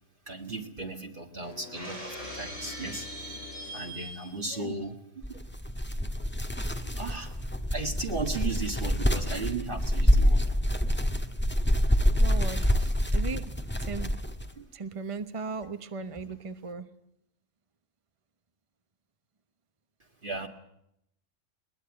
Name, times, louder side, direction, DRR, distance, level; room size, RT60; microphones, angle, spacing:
voice 1, 0.3-3.1 3.7-5.4 6.8-7.3 7.7-10.4 11.1-11.2 12.6-12.9 14.6-14.7 20.2-20.5, right 3 dB, 45° right, 2 dB, 2.1 m, -36 dB
sound 1, 1.2-4.0, left 4 dB, 60° left, 1.5 m, -46 dB
Shatter, 1.7-4.5, right 1 dB, 75° right, 6.4 m, -41 dB
voice 2, 4.4-4.8 12.1-12.6 13.1-13.5 13.8-14.1 14.7-16.9, right 4 dB, 25° right, 11 dB, 1.1 m, -37 dB
sound 2, 5.2-14.5, equal, 10° left, 1.4 m, -26 dB
22.0 x 20.5 x 9.6 m, 0.77 s
omnidirectional pair, 1.3 m